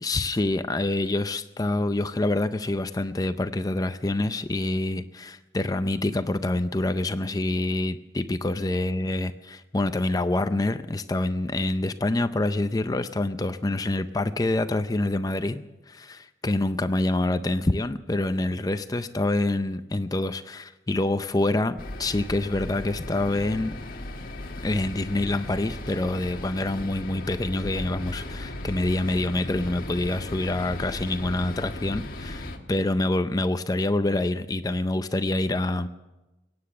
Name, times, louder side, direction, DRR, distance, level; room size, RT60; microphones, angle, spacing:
voice 1, 0.0-23.7 24.6-35.9, left 2 dB, 20° left, 11 dB, 0.4 m, -26 dB
sound 1, 21.8-32.6, left 1 dB, 45° left, 1.5 m, -36 dB
22.5 x 9.7 x 6.6 m, 1.1 s
head